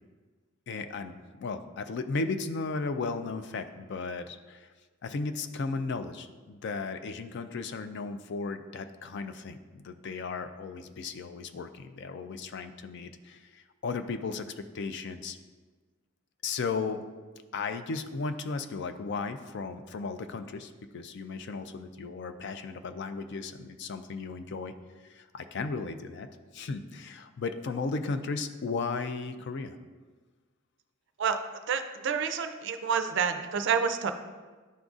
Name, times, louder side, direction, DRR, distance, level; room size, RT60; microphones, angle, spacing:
voice 1, 0.7-4.7 5.0-15.4 16.4-17.0 17.5-24.7 25.0-26.3 26.5-29.8, left 4 dB, 50° left, 9 dB, 0.3 m, -35 dB
voice 2, 31.2-34.1, right 6 dB, 55° right, 8 dB, 0.4 m, -29 dB
10.0 x 3.9 x 2.4 m, 1.4 s
head